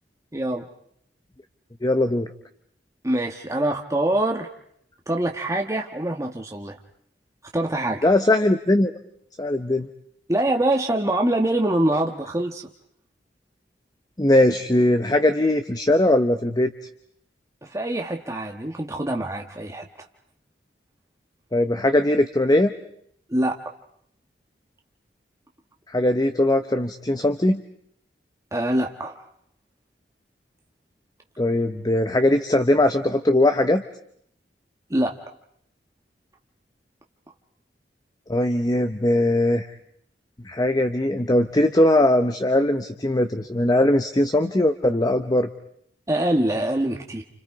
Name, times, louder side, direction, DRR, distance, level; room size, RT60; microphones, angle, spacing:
voice 1, 0.3-0.7 3.0-4.5 5.1-6.8 7.5-8.0 10.3-12.7 17.6-19.9 23.3-23.6 28.5-29.1 34.9-35.2 46.1-47.2, right 1 dB, 20° right, 2 dB, 1.4 m, -24 dB
voice 2, 1.8-2.3 8.0-8.9 9.4-9.9 14.2-16.7 21.5-22.7 25.9-27.6 31.4-33.8 38.3-39.7 40.4-45.5, left 1 dB, 20° left, 7 dB, 0.9 m, -20 dB
30.0 x 29.5 x 4.8 m, 0.68 s
head